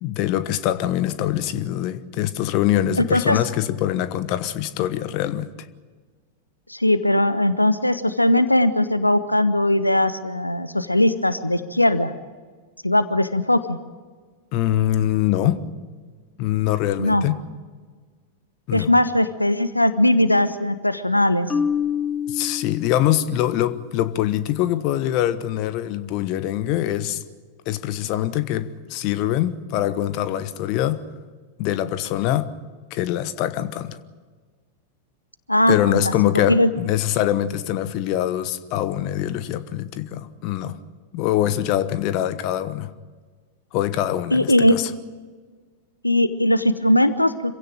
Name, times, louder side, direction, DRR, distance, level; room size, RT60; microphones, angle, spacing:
voice 1, 0.0-5.5 14.5-15.7 16.4-17.4 18.7-18.9 22.3-27.2 27.7-31.0 31.6-32.5 32.9-34.0 35.7-40.8 41.1-42.9 43.7-44.9, left 12 dB, 45° left, 1.2 m, -23 dB
voice 2, 3.0-3.4 6.7-12.1 12.8-13.8 17.0-17.3 18.7-21.5 35.5-36.0 36.5-36.7 44.3-44.7 46.0-47.6, left 1 dB, 85° left, 1.0 m, -19 dB
Marimba xylophone, 21.5-23.5, left 7 dB, 15° left, 0.8 m, -27 dB
26.5 x 16.5 x 9.0 m
figure-of-eight pair, 90°, 0 cm